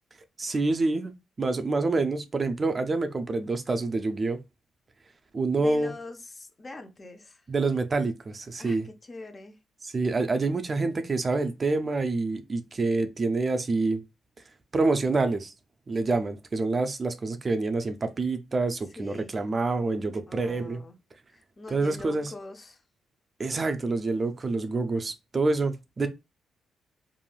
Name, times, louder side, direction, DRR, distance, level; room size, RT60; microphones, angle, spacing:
voice 1, 0.4-1.1 1.4-4.4 5.3-5.9 7.5-8.9 9.8-14.0 14.7-15.5 15.9-20.8 21.7-22.3 23.4-26.1, right 3 dB, 35° right, 0.4 m, -27 dB
voice 2, 5.5-7.5 8.6-9.6 19.0-19.3 20.3-21.0 21.3-22.8, left 2 dB, 30° left, 0.6 m, -43 dB
3.1 x 2.5 x 2.3 m
supercardioid pair, 70°, 0 cm